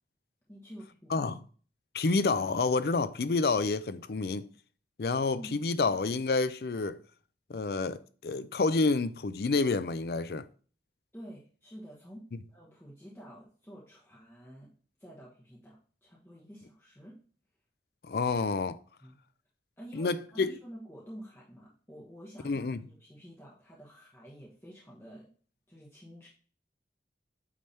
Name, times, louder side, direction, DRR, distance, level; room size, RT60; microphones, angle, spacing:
voice 1, 0.5-1.2 5.3-5.5 11.1-14.7 15.0-17.1 19.0-19.2 19.8-25.3 25.7-26.3, equal, 15° left, 1.2 m, -49 dB
voice 2, 1.9-4.5 5.0-7.0 7.5-10.4 18.1-18.8 19.9-20.5 22.4-22.8, left 3 dB, 60° left, 0.4 m, -29 dB
8.5 x 3.5 x 4.3 m
head